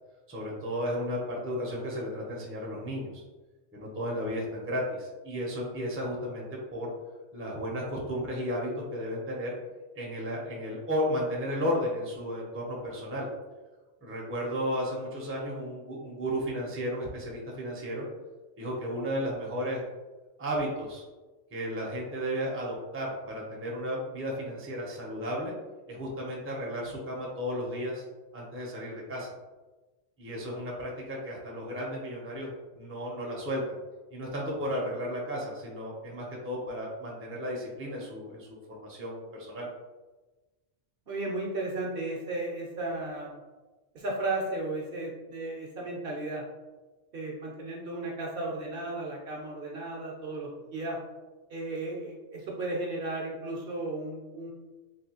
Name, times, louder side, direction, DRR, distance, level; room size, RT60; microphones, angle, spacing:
voice 1, 0.3-3.2 3.7-6.9 7.3-9.5 9.9-13.3 14.0-18.1 18.6-19.8 20.4-21.0 21.5-25.5 25.9-28.0 28.3-29.3 30.2-33.8 34.1-39.7, equal, 15° right, -3 dB, 0.5 m, -34 dB
voice 2, 41.1-43.4 43.9-46.4 47.1-51.0 51.5-54.5, right 2 dB, 60° right, -2 dB, 0.7 m, -34 dB
3.4 x 2.7 x 2.8 m, 1.2 s
omnidirectional pair, 1.2 m